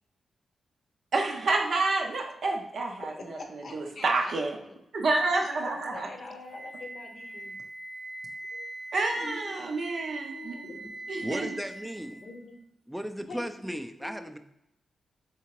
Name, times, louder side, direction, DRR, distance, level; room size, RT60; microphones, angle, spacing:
voice 1, 1.1-3.4 3.7-4.6 4.9-6.1 8.9-10.5 11.1-11.5, right 3 dB, 70° right, 1 dB, 0.4 m, -28 dB
voice 2, 3.4-4.3 4.6-4.8 5.5-7.6 8.5-8.7 9.1-9.9 10.3-11.3 12.2-12.6 13.3-14.3, left 2 dB, 65° left, 3 dB, 0.7 m, -45 dB
Wind instrument woodwind instrument, 6.5-12.5, right 2 dB, 25° right, 0.7 m, -41 dB
voice 3, 11.2-12.2 12.9-14.4, equal, 5° right, 7 dB, 0.3 m, -36 dB
3.5 x 2.8 x 2.9 m, 0.81 s
supercardioid pair, 40°, 0 cm